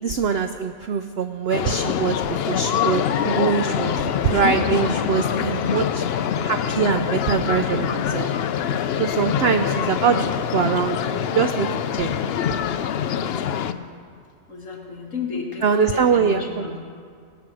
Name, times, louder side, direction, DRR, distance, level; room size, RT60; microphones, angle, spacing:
voice 1, 0.0-6.0 6.4-8.3 9.0-10.3 10.5-12.1 15.6-16.7, right 6 dB, 70° right, 8 dB, 0.6 m, -23 dB
sound 1, 1.5-13.7, left 9 dB, 90° left, 0.5 m, -24 dB
Trumpet, 2.7-10.3, left 2 dB, 30° left, 0.9 m, -42 dB
voice 2, 9.1-9.8 12.0-12.4 13.2-13.9 14.5-16.8, left 4 dB, 55° left, -1 dB, 2.2 m, -34 dB
19.0 x 8.2 x 6.2 m, 2.1 s
omnidirectional pair, 1.6 m